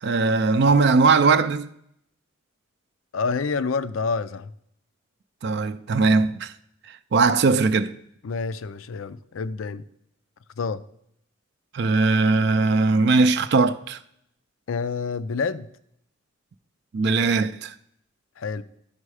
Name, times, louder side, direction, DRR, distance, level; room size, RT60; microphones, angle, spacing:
voice 1, 0.0-1.7 5.4-6.5 6.9-7.9 11.7-14.0 16.9-17.7, right 4 dB, 55° right, 0.4 m, -20 dB
voice 2, 3.1-4.5 8.2-9.8 10.6-10.8 14.7-15.7 18.4-18.6, left 4 dB, 85° left, 0.5 m, -28 dB
11.0 x 5.4 x 4.8 m
head